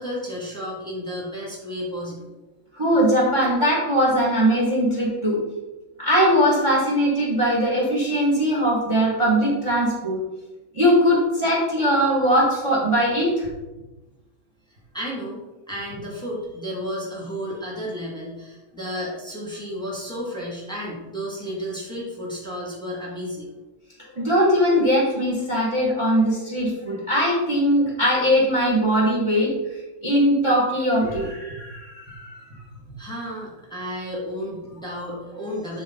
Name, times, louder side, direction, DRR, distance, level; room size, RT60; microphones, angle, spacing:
voice 1, 0.0-2.3 14.9-15.4 15.7-23.5 33.0-35.8, equal, ahead, -4 dB, 2.0 m, -32 dB
voice 2, 2.7-5.4 6.0-10.2 10.7-13.5 24.2-29.5 30.0-32.4, equal, 15° right, -4 dB, 1.7 m, -20 dB
11.5 x 3.9 x 3.9 m, 1.1 s
omnidirectional pair, 2.2 m